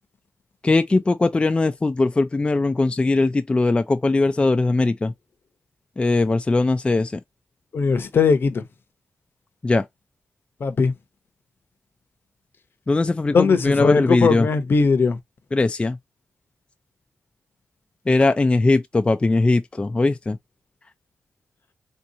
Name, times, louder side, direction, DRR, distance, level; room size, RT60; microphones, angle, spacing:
voice 1, 0.6-5.1 6.0-7.2 9.6-9.8 12.9-14.5 15.5-16.0 18.1-20.4, left 3 dB, 25° left, 0.4 m, -20 dB
voice 2, 7.7-8.6 10.6-10.9 13.3-15.2, left 4 dB, 60° left, 0.7 m, -19 dB
3.5 x 2.8 x 2.6 m
cardioid pair, 70°, 4 cm